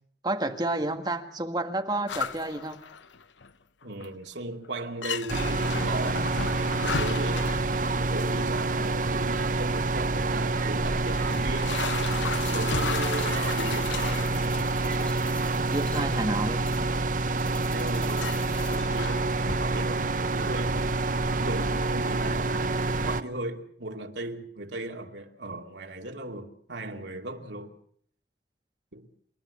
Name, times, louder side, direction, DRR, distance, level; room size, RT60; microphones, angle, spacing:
voice 1, 0.2-2.8 15.7-16.6, right 2 dB, 20° right, 1.8 m, -30 dB
sound 1, 2.1-3.5 3.8-4.3 4.6-4.7 5.0-8.5 9.4-9.5 10.3-10.4 11.1-14.9 15.2-15.5 16.3-16.4 17.7-17.8 18.2-19.7, left 5 dB, 85° left, 0.9 m, -35 dB
voice 2, 3.8-6.4 6.8-11.8 12.4-14.5 17.3-20.9 21.4-27.7 28.9-29.1, right 2 dB, 75° right, 2.5 m, -37 dB
sound 2, 5.3-23.2, right 3 dB, 45° right, 0.9 m, -27 dB
sound 3, 11.3-18.8, left 1 dB, 5° left, 1.2 m, -45 dB
28.0 x 12.0 x 8.5 m
head